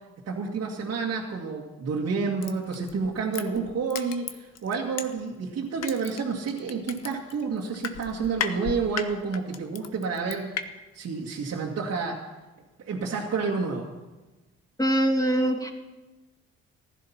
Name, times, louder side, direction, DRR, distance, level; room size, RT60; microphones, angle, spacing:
voice 1, 0.3-10.7 10.9-12.2 12.8-13.9, right 5 dB, 55° right, -3 dB, 2.1 m, -29 dB
Crushing, 2.4-5.4 5.8-10.6 11.0-11.1, left 8 dB, 60° left, 1.2 m, -35 dB
voice 2, 14.8-15.7, right 1 dB, 10° left, 3 dB, 2.5 m, -23 dB
15.0 x 11.0 x 5.9 m, 1.2 s
hypercardioid pair, 60°, 29 cm